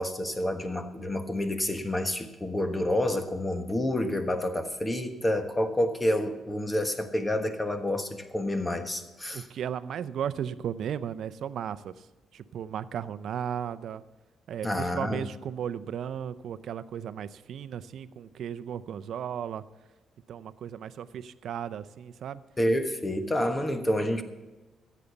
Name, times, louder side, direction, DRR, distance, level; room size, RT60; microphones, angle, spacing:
voice 1, 0.0-9.5 14.6-15.3 22.6-24.2, left 1 dB, 15° left, 7 dB, 1.3 m, -28 dB
voice 2, 9.3-11.9 12.3-14.0 14.5-19.6 20.3-22.4, right 9 dB, 70° right, 14 dB, 0.5 m, -35 dB
13.5 x 8.4 x 6.9 m, 1.1 s
cardioid pair, 90°, 0 cm